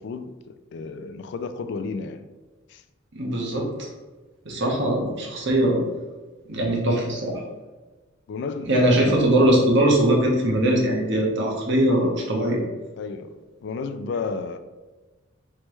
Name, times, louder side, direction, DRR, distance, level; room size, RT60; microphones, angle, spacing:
voice 1, 0.0-2.3 2.7-2.8 8.3-9.4 13.0-14.6, left 4 dB, 60° left, 0.3 m, -32 dB
voice 2, 3.1-3.9 4.4-5.8 6.5-7.4 8.6-12.6, right 1 dB, 60° right, 1.0 m, -21 dB
4.7 x 3.3 x 3.0 m
head